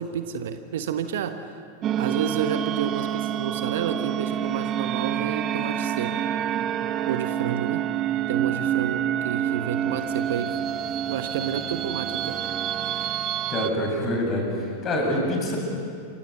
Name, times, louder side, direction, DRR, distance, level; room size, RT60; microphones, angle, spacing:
voice 1, 0.0-1.4 2.0-6.2 7.1-7.8 8.3-10.6 11.1-12.4, right 8 dB, 55° right, 9 dB, 1.3 m, -30 dB
sound 1, 1.8-13.7, right 10 dB, 30° right, 0.9 m, -27 dB
voice 2, 13.5-15.6, left 1 dB, 30° left, 0 dB, 7.8 m, -26 dB
28.0 x 25.0 x 6.9 m, 2.4 s
figure-of-eight pair, 90°, 0 cm